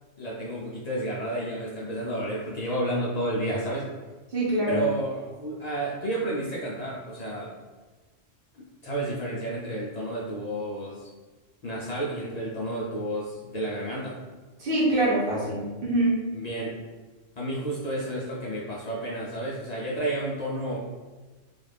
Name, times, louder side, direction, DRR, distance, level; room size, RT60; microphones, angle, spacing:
voice 1, 0.2-3.8 4.7-7.5 8.8-11.1 11.6-14.2 16.3-16.8 17.4-20.8, right 1 dB, 75° left, -5 dB, 0.3 m, -31 dB
voice 2, 4.3-4.9 14.6-16.2, right 1 dB, 50° right, -5 dB, 0.9 m, -24 dB
2.4 x 2.3 x 3.3 m, 1.3 s
omnidirectional pair, 1.3 m